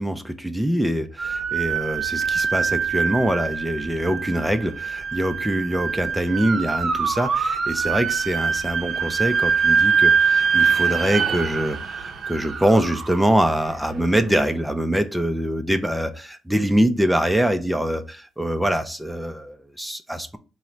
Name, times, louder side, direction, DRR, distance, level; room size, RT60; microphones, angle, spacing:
voice 1, 0.0-20.4, right 1 dB, 5° right, 9 dB, 0.4 m, -24 dB
sound 1, 1.2-14.2, right 6 dB, 55° right, 0.6 m, -24 dB
3.7 x 2.1 x 4.4 m, 0.34 s
cardioid pair, 90°, 0 cm